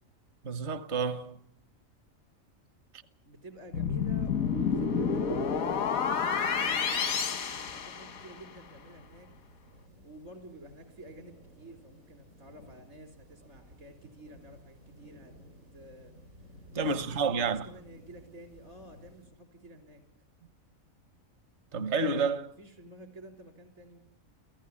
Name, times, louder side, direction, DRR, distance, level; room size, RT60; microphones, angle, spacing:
voice 1, 0.4-1.4 16.7-17.6 21.7-22.5, right 4 dB, 55° right, 1.4 m, -29 dB
voice 2, 3.2-9.3 10.0-15.4 15.7-16.1 16.8-20.0 22.6-24.0, right 1 dB, 70° right, 4.7 m, -51 dB
sound 1, 3.7-8.5, left 6 dB, 90° left, 1.8 m, -29 dB
sound 2, 6.1-19.2, equal, 90° right, 8.8 m, -56 dB
30.0 x 17.0 x 8.6 m
omnidirectional pair, 1.4 m